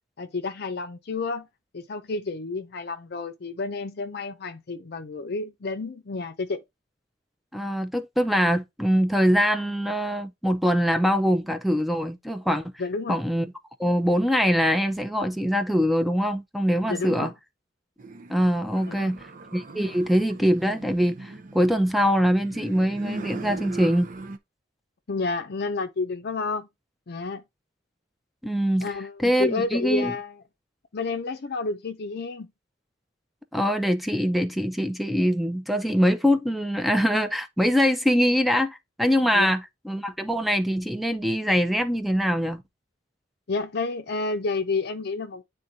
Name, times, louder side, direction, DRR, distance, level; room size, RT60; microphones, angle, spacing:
voice 1, 0.2-1.5 1.7-6.6 12.8-13.2 16.9-17.3 18.8-19.1 25.1-26.7 27.1-27.4 28.8-30.4 30.9-32.5 39.3-39.5 43.5-45.4, left 3 dB, 60° left, 0.5 m, -30 dB
voice 2, 7.5-12.7 13.1-13.5 13.8-17.3 18.3-19.3 19.5-24.1 28.4-28.9 29.2-30.1 33.5-39.6 39.9-42.6, equal, ahead, 0.6 m, -23 dB
sound 1, 18.0-24.4, right 3 dB, 45° right, 0.7 m, -39 dB
9.3 x 3.7 x 2.7 m
head